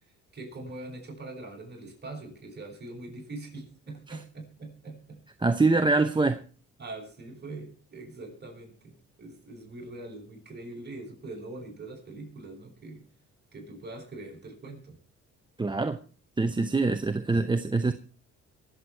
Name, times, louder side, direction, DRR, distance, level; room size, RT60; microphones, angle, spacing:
voice 1, 0.3-5.2 6.8-13.0 13.5-15.0, right 2 dB, 35° right, 7.3 m, -42 dB
voice 2, 5.4-6.4 15.6-16.0 16.4-17.9, right 3 dB, 15° right, 0.8 m, -24 dB
23.5 x 8.1 x 4.5 m
cardioid pair, 90°, 30 cm